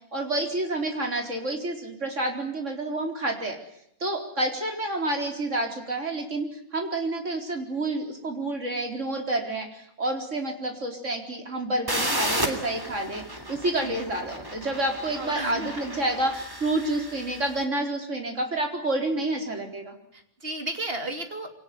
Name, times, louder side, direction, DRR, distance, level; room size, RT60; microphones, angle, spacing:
voice 1, 0.1-3.6 4.0-20.0, right 2 dB, 55° right, 3 dB, 4.7 m, -29 dB
sound 1, 11.9-17.5, right 1 dB, 15° right, 3.3 m, -33 dB
voice 2, 15.1-15.8 20.1-21.5, right 2 dB, 40° right, 5 dB, 3.3 m, -33 dB
24.5 x 18.5 x 9.6 m, 0.73 s
omnidirectional pair, 1.5 m